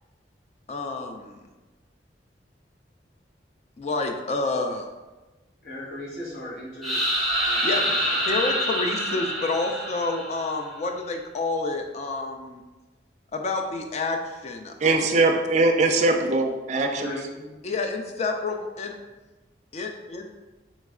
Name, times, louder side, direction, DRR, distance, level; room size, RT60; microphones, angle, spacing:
voice 1, 0.7-1.4 3.8-4.9 7.6-12.6 13.3-15.0 17.6-19.0 19.7-20.3, left 3 dB, 40° left, 4 dB, 0.4 m, -29 dB
voice 2, 5.6-7.0 7.4-8.1 16.7-17.6, equal, 60° left, -6 dB, 1.1 m, -36 dB
sound 1, 6.8-10.6, equal, ahead, 0.7 m, -26 dB
voice 3, 14.8-17.1, right 2 dB, 40° right, 4 dB, 0.3 m, -21 dB
3.2 x 3.1 x 3.6 m, 1.2 s
head